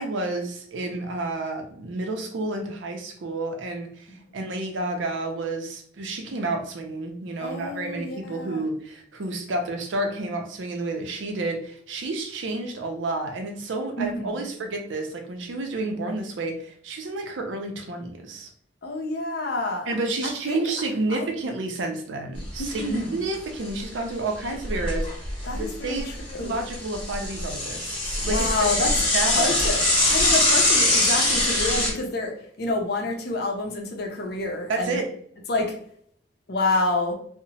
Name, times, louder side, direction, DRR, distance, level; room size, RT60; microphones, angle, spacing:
voice 1, 0.0-18.5 19.8-26.1 26.4-28.5 29.1-29.6 34.7-35.1, right 2 dB, 70° right, 4 dB, 0.5 m, -30 dB
voice 2, 7.4-8.7 14.0-14.5 18.8-19.9 20.2-20.6 21.1-21.3 22.6-23.3 25.4-26.6 28.2-29.1 29.3-35.0 35.5-35.8 36.5-37.1, left 2 dB, 55° left, 2 dB, 0.5 m, -28 dB
Bicycle / Mechanisms, 22.4-23.0 23.3-23.4 23.7-23.8 24.4-25.6 26.0-31.9, left 1 dB, 25° left, 0.9 m, -23 dB
2.8 x 2.0 x 2.7 m, 0.63 s
head